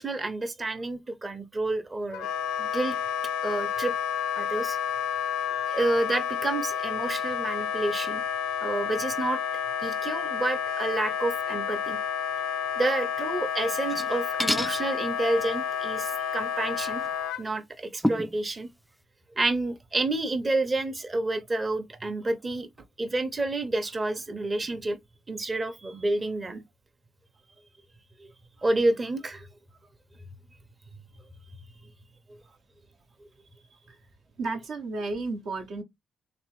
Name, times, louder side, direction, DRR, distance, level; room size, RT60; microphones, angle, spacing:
voice 1, 0.0-2.3 2.6-2.9 3.4-3.9 4.4-4.8 5.7-8.2 8.6-9.4 9.8-12.0 12.7-17.0 17.4-18.7 19.4-22.7 23.0-25.0 25.3-26.6 28.2-28.3 28.6-29.5, right 2 dB, 35° right, 0.8 m, -29 dB
Wind instrument woodwind instrument, 2.1-17.4, left 8 dB, 80° left, 0.4 m, -30 dB
sound 1, 13.8-14.1 14.4-14.8 17.0-17.1 18.0-18.4, equal, 5° left, 0.3 m, -27 dB
voice 2, 34.4-35.8, right 3 dB, 70° right, 0.9 m, -32 dB
3.5 x 2.9 x 3.1 m
hypercardioid pair, 45°, 0 cm